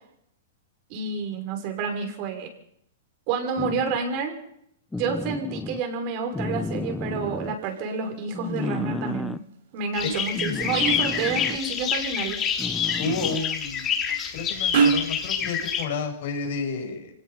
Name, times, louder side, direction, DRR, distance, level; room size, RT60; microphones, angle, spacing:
voice 1, 0.9-2.5 3.3-4.4 5.0-9.4 9.7-12.4, right 5 dB, 45° right, 4 dB, 6.1 m, -29 dB
sound 1, 3.6-4.0 4.9-5.8 6.3-7.6 8.3-9.4 10.3-11.6 12.6-13.5 15.4-15.5, left 2 dB, 5° left, 0.7 m, -32 dB
sound 2, 6.4-15.2, right 5 dB, 70° right, 6.8 m, -32 dB
sound 3, 9.9-15.8, left 7 dB, 25° left, 3.9 m, -27 dB
voice 2, 13.0-13.9 14.3-17.1, left 4 dB, 60° left, 4 dB, 7.3 m, -31 dB
26.0 x 17.5 x 5.9 m, 0.73 s
hypercardioid pair, 125°, 0 cm